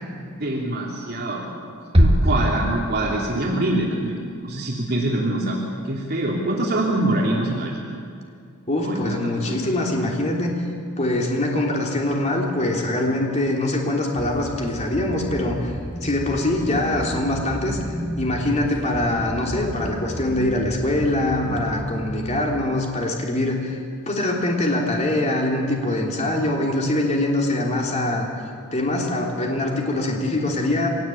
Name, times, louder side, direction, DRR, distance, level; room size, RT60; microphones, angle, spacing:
voice 1, 0.4-1.5 2.0-5.6 5.9-7.8 8.8-9.6, right 1 dB, 45° right, -3 dB, 3.4 m, -24 dB
sound 1, 1.9-3.6, equal, 25° right, 1.8 m, -20 dB
voice 2, 8.7-10.5 11.0-15.7 16.0-17.8 18.2-23.8 24.1-28.3 28.7-30.9, left 1 dB, 30° left, -1 dB, 3.2 m, -23 dB
sound 2, 14.2-22.2, equal, 50° left, 7.9 m, -32 dB
24.5 x 18.5 x 8.7 m, 2.3 s
head